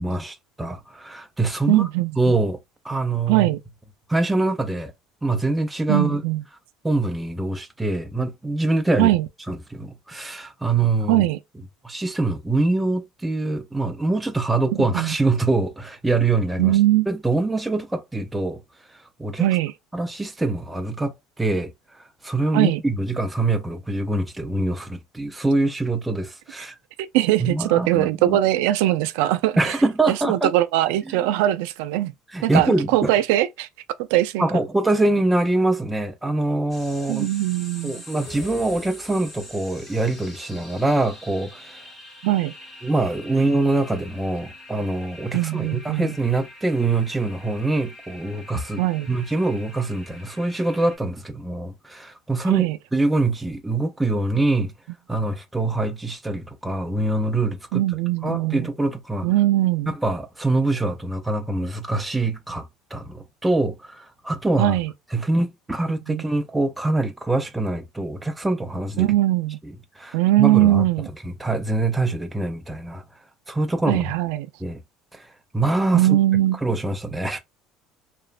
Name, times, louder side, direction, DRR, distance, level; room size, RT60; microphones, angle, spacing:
voice 1, 0.0-1.9 2.2-2.6 2.8-3.5 4.1-4.9 5.2-6.2 6.8-9.1 9.5-11.2 11.8-16.7 17.1-18.6 18.9-19.5 19.9-26.8 27.4-28.4 29.6-30.5 31.1-31.2 32.3-33.1 34.4-37.3 37.8-41.8 42.8-54.7 55.1-57.8 58.2-59.3 59.9-64.7 65.1-69.1 69.6-70.9 71.2-73.0 73.5-74.1 74.6-74.8 75.1-75.3 75.5-76.2 76.6-77.4, right 2 dB, 5° right, 0.4 m, -24 dB
voice 2, 1.7-2.2 3.3-3.6 5.9-6.4 9.0-9.3 11.1-11.4 14.9-15.1 16.6-17.1 19.4-19.7 22.5-22.8 27.0-29.8 30.1-32.1 32.4-33.7 34.1-34.4 37.1-38.0 42.2-42.5 45.3-46.2 48.8-49.1 52.5-52.8 57.7-58.7 59.2-59.9 64.6-64.9 66.1-66.2 69.0-69.6 70.1-71.1 73.9-74.5 75.9-76.6, right 15 dB, 85° right, 0.3 m, -20 dB
sound 1, 36.7-51.0, left 1 dB, 10° left, 0.8 m, -44 dB
sound 2, 38.2-39.8, left 2 dB, 50° left, 1.2 m, -43 dB
3.0 x 2.0 x 2.4 m
cardioid pair, 155°, 0 cm